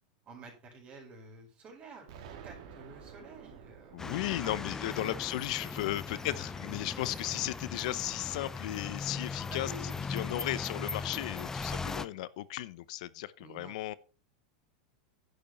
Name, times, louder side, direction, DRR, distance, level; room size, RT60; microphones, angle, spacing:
voice 1, 0.2-2.1 2.4-4.1 4.4-4.5 4.8-5.2 5.6-6.7 7.1-7.3 9.5-10.5 13.4-13.8, right 2 dB, 30° right, 4.9 m, -51 dB
Explosion, 2.1-6.9, right 7 dB, 60° right, 3.0 m, -52 dB
voice 2, 3.9-9.7 10.1-13.9, left 15 dB, 65° left, 0.8 m, -35 dB
sound 1, 4.0-12.1, left 4 dB, 10° left, 0.5 m, -39 dB
10.5 x 6.8 x 5.7 m
supercardioid pair, 125°, 4 cm